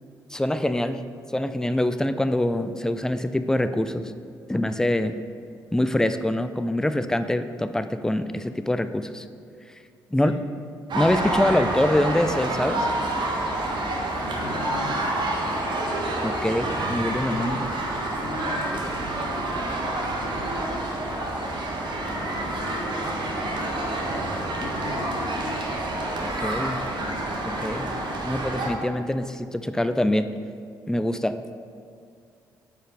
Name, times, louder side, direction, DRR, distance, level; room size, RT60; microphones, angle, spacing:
voice 1, 0.3-1.0 1.3-4.1 4.5-5.1 5.7-9.2 10.1-10.3 10.9-12.9 16.2-17.6 26.4-26.8 27.4-27.9 28.2-30.3 30.9-31.4, left 1 dB, 5° left, 11 dB, 0.5 m, -24 dB
sound 1, 10.9-28.7, right 1 dB, 50° right, 1.4 m, -28 dB
voice 2, 14.1-15.6 17.1-17.8 18.2-21.0 21.9-25.7, left 3 dB, 60° left, 4 dB, 0.9 m, -40 dB
8.6 x 5.1 x 4.8 m, 2.3 s
hypercardioid pair, 45°, 10 cm